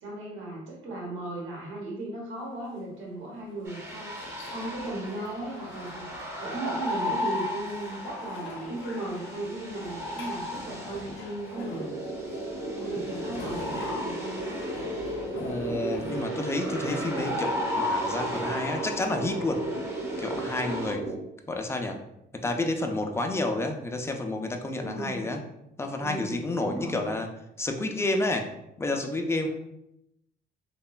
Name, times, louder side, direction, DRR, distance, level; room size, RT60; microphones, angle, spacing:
voice 1, 0.0-11.9 12.7-14.6 24.8-25.3 26.0-27.1, right 2 dB, 80° right, -4 dB, 1.0 m, -36 dB
sound 1, 2.4-19.4, left 3 dB, 80° left, 0.5 m, -46 dB
sound 2, 3.7-20.9, left 1 dB, 15° right, 0.7 m, -36 dB
sound 3, 11.5-21.1, right 2 dB, 55° right, 0.9 m, -34 dB
voice 2, 15.4-19.6 20.2-21.0 21.5-22.0 22.4-25.4 25.8-27.3 27.6-28.5 28.8-29.5, left 2 dB, 15° left, 4 dB, 0.3 m, -30 dB
2.9 x 2.1 x 2.3 m, 0.83 s
cardioid pair, 90°, 20 cm